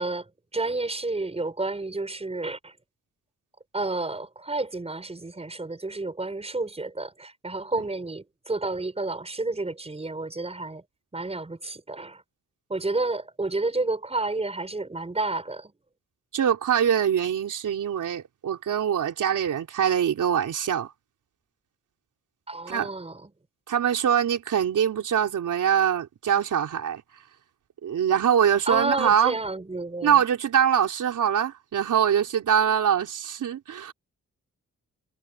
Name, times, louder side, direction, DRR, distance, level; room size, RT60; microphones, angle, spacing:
voice 1, 0.0-2.7 3.7-10.8 11.1-12.2 12.7-15.7 22.5-23.3 28.7-30.2, right 2 dB, 20° right, 5.7 m, -30 dB
voice 2, 16.3-20.9 22.7-22.9 23.7-27.0 27.8-29.3 30.0-33.9, right 8 dB, 75° right, 4.0 m, -23 dB
cardioid pair, 115°, 31 cm